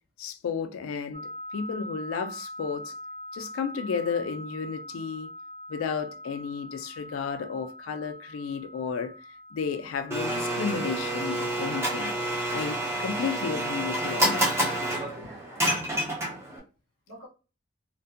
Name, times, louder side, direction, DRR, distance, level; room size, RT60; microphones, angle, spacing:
voice 1, 0.2-2.9 3.3-5.3 5.7-9.1 9.5-12.1 12.5-14.5, left 6 dB, 80° left, 0.3 m, -32 dB
sound 1, 1.1-12.6, left 1 dB, 40° right, 0.9 m, -43 dB
Domestic sounds home sounds, 10.1-16.6, right 1 dB, 15° right, 0.4 m, -28 dB
voice 2, 15.1-16.3 17.1-17.3, equal, 70° right, 1.3 m, -49 dB
2.5 x 2.1 x 2.4 m
head